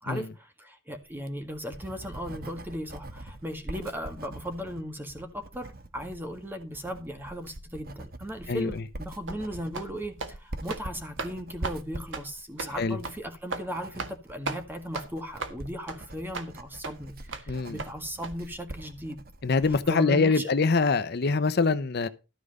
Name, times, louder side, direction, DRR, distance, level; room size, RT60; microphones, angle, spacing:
voice 1, 0.0-19.2 19.9-20.5, equal, 10° right, 1.7 m, -37 dB
Writing, 1.1-19.9, right 1 dB, 50° right, 1.2 m, -44 dB
voice 2, 8.5-8.8 12.8-13.0 17.5-17.8 19.4-22.1, left 4 dB, 55° left, 0.7 m, -24 dB
sound 1, 9.3-9.4 9.7-9.9 10.2-10.3 10.6-10.9 11.2-11.3 11.6-11.8 12.1-12.3 12.6-12.7 13.0-13.2 13.5-13.7 14.0-14.2 14.5-14.6 14.9-15.1 15.4-15.6 15.9-16.0 16.3-16.5 16.8-16.9 17.3-17.5 17.8-17.9 18.2-18.3, right 3 dB, 70° right, 1.7 m, -35 dB
13.0 x 4.9 x 6.4 m
head